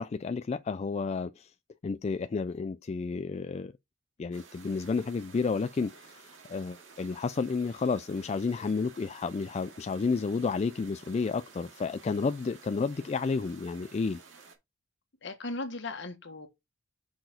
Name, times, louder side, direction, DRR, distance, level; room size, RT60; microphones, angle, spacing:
voice 1, 0.0-1.5 1.8-3.7 4.2-14.2, left 4 dB, 35° left, 0.3 m, -31 dB
sound 1, 4.3-14.6, right 5 dB, 70° right, 2.2 m, -53 dB
voice 2, 15.2-16.5, left 2 dB, 60° left, 1.4 m, -37 dB
6.0 x 4.6 x 5.0 m
head